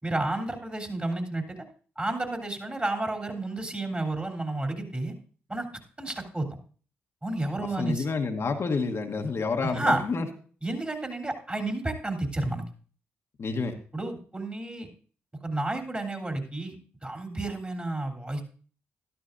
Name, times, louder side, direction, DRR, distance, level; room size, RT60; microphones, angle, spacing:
voice 1, 0.0-1.6 2.0-5.1 5.5-5.7 6.0-6.5 7.2-8.0 9.6-10.0 10.6-12.6 13.9-14.9 15.4-16.8 17.0-18.4, right 2 dB, 25° right, 2 dB, 3.2 m, -31 dB
voice 2, 7.8-10.3 13.4-13.7, left 4 dB, 55° left, 4 dB, 1.1 m, -28 dB
13.0 x 12.0 x 2.6 m, 0.41 s
supercardioid pair, 45°, 5 cm